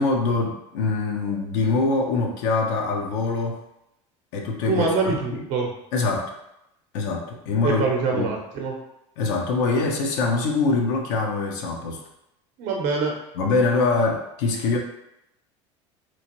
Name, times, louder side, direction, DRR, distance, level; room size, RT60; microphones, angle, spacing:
voice 1, 0.0-3.6 4.3-4.8 5.1-5.4 5.9-6.3 6.9-7.8 8.1-8.3 9.2-12.0 13.4-14.8, left 3 dB, 70° left, 1 dB, 0.6 m, -23 dB
voice 2, 4.7-5.7 7.6-8.8 12.6-13.2, right 4 dB, 60° right, 0 dB, 0.7 m, -24 dB
3.0 x 2.5 x 2.9 m, 0.83 s
hypercardioid pair, 90°, 15 cm